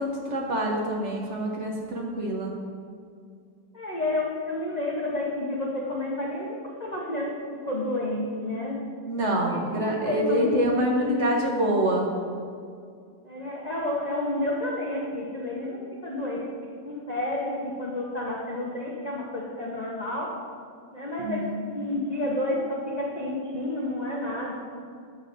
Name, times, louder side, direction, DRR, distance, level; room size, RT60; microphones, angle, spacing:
voice 1, 0.0-2.5 9.0-12.1 21.2-21.7, right 1 dB, 55° right, -1 dB, 0.9 m, -26 dB
voice 2, 3.7-8.8 9.4-11.4 13.2-20.3 20.9-24.5, left 1 dB, 50° left, -3 dB, 0.5 m, -30 dB
9.8 x 6.4 x 2.5 m, 2.3 s
omnidirectional pair, 1.8 m